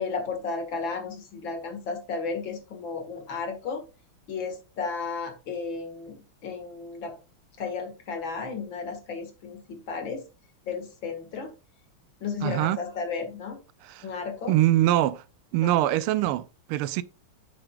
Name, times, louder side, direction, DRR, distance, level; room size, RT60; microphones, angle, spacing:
voice 1, 0.0-3.8 4.3-7.2 7.6-10.2 10.7-11.5 12.2-13.6 14.0-14.6 15.6-15.7, left 5 dB, 65° left, 2.5 m, -33 dB
voice 2, 12.4-12.8 13.8-14.0 14.5-15.2 15.5-17.0, right 14 dB, 90° right, 1.5 m, -23 dB
8.7 x 7.8 x 2.4 m
omnidirectional pair, 2.3 m